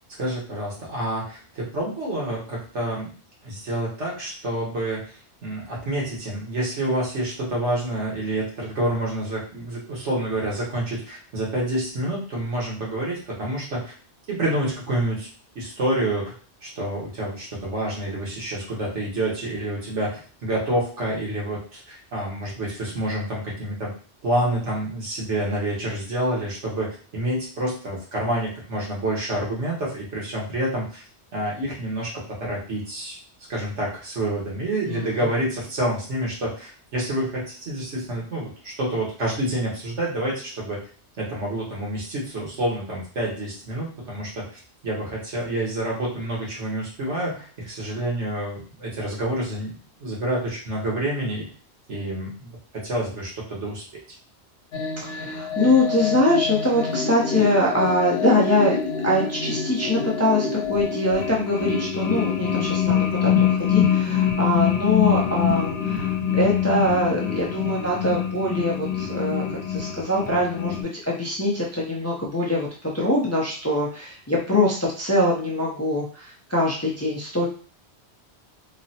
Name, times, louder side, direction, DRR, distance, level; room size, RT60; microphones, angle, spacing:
voice 1, 0.2-3.1 3.4-13.9 14.3-15.3 15.5-16.3 16.6-23.9 24.2-31.0 31.3-33.2 33.5-40.8 41.2-51.5 51.9-53.8, right 1 dB, 90° right, -4 dB, 1.5 m, -28 dB
voice 2, 34.9-35.2 55.0-58.8 59.0-77.5, left 1 dB, 25° left, -4 dB, 0.3 m, -23 dB
sound 1, 54.7-70.8, left 7 dB, 75° left, 0.9 m, -25 dB
3.8 x 2.0 x 2.7 m, 0.41 s
omnidirectional pair, 1.2 m